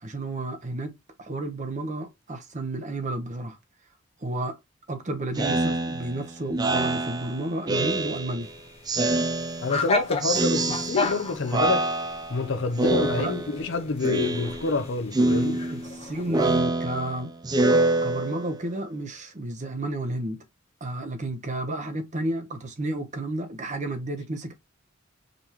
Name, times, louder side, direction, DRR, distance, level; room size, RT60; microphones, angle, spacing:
voice 1, 0.0-0.9 1.2-3.6 4.2-4.6 4.9-8.5 12.9-13.3 15.7-17.3 18.0-20.4 20.8-24.5, right 2 dB, 35° right, 0.9 m, -32 dB
Speech synthesizer, 5.4-8.5 8.9-9.9 10.2-11.2 11.5-12.4 12.8-13.7 14.0-14.8 15.1-18.7, right 2 dB, 20° right, 0.5 m, -26 dB
sound 1, 8.4-16.6, left 3 dB, 30° left, 0.9 m, -34 dB
voice 2, 9.6-11.9 12.3-15.6, left 4 dB, 65° left, 0.7 m, -27 dB
5.2 x 3.5 x 2.9 m
head